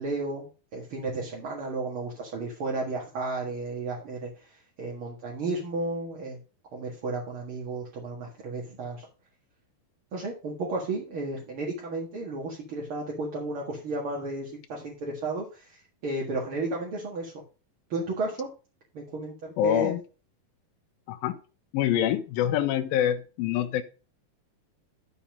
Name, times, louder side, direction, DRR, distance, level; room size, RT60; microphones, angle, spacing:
voice 1, 0.0-6.4 6.7-9.1 10.1-17.3 17.9-18.5 18.9-19.9, right 2 dB, 45° right, 2.1 m, -33 dB
voice 2, 19.6-20.0 21.1-21.4 21.7-23.8, left 11 dB, 80° left, 2.5 m, -25 dB
12.0 x 4.2 x 5.2 m
omnidirectional pair, 4.1 m